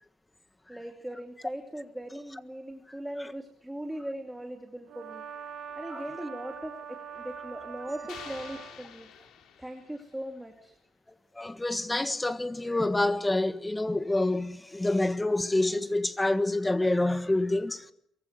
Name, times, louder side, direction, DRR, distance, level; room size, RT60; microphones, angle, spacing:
voice 1, 0.7-5.2 5.8-9.1 9.6-10.7, right 1 dB, 5° right, 2.6 m, -39 dB
Brass instrument, 4.9-8.8, right 6 dB, 65° right, 6.9 m, -42 dB
sound 1, 8.1-10.2, left 8 dB, 70° left, 4.5 m, -48 dB
voice 2, 11.3-17.9, left 2 dB, 10° left, 1.6 m, -27 dB
23.5 x 23.5 x 8.1 m
cardioid pair, 130°, 0 cm